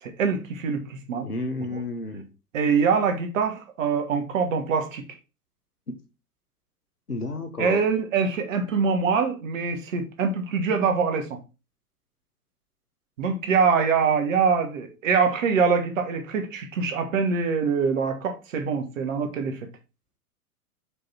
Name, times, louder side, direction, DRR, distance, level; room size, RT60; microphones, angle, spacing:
voice 1, 0.0-1.3 1.7-1.8 2.5-5.0 7.6-11.4 13.2-19.6, right 5 dB, 60° right, 1.3 m, -24 dB
voice 2, 1.2-2.3 5.9-6.0 7.1-7.8, left 2 dB, 85° left, 1.2 m, -31 dB
5.2 x 4.8 x 4.2 m
figure-of-eight pair, 95°, 45 cm